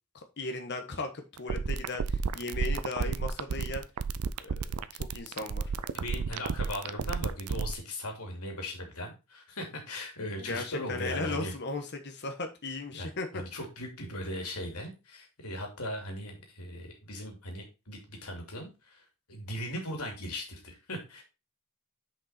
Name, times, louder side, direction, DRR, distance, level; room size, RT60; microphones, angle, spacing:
voice 1, 0.1-3.8 4.4-4.5 4.9-5.7 10.5-13.3, left 3 dB, 50° left, 5 dB, 1.2 m, -36 dB
sound 1, 1.4-7.7, right 5 dB, 75° right, 0.5 m, -31 dB
voice 2, 5.9-11.5 12.9-19.0 19.3-21.2, left 1 dB, 80° left, 2 dB, 2.5 m, -38 dB
6.2 x 5.2 x 4.1 m, 0.28 s
head